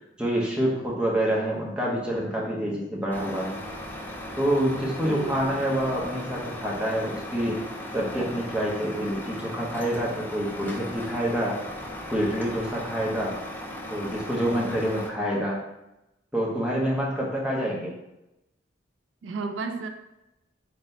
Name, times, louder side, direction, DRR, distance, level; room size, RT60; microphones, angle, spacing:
voice 1, 0.2-3.6 4.4-7.6 7.9-11.6 12.1-13.3 13.9-15.6 16.3-17.9, equal, 5° right, -4 dB, 0.8 m, -27 dB
Truck, 3.1-15.1, left 1 dB, 10° left, 0.4 m, -37 dB
voice 2, 5.0-5.5 19.2-19.9, right 4 dB, 75° right, 6 dB, 0.3 m, -32 dB
3.9 x 2.1 x 4.0 m, 0.91 s
head